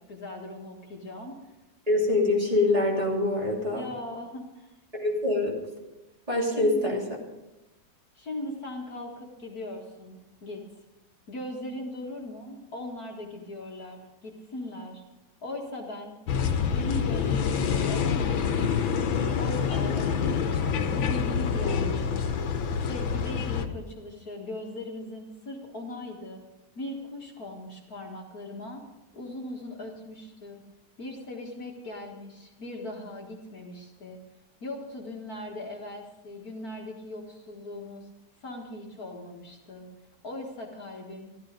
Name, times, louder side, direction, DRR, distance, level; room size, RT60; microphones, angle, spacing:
voice 1, 0.1-1.4 3.7-4.7 6.5-6.9 8.2-10.6 11.3-15.0 15.4-16.2 16.7-19.1 19.4-20.6 20.9-22.2 22.8-26.4 26.8-28.8 29.1-30.6 31.0-34.2 34.6-38.1 38.4-39.9 40.2-41.3, left 1 dB, 50° left, 0 dB, 2.2 m, -39 dB
voice 2, 1.9-3.9 4.9-5.6 6.3-7.0, left 2 dB, 20° right, -4 dB, 3.0 m, -24 dB
sound 1, 16.3-23.7, left 6 dB, 80° left, 1.7 m, -27 dB
13.5 x 13.5 x 5.2 m, 1.0 s
omnidirectional pair, 2.1 m